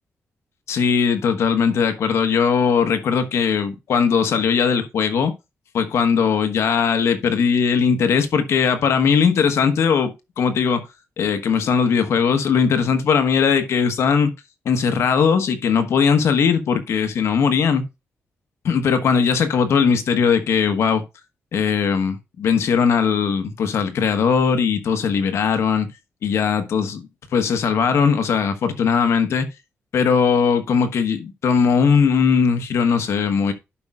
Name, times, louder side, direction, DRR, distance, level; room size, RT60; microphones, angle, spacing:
voice 1, 0.7-5.3 5.7-10.8 11.2-14.3 14.6-17.8 18.6-21.0 21.5-25.9 26.2-27.0 27.3-29.5 29.9-33.5, left 6 dB, 80° left, 1.2 m, -19 dB
11.5 x 5.4 x 2.4 m
cardioid pair, 95°, 5 cm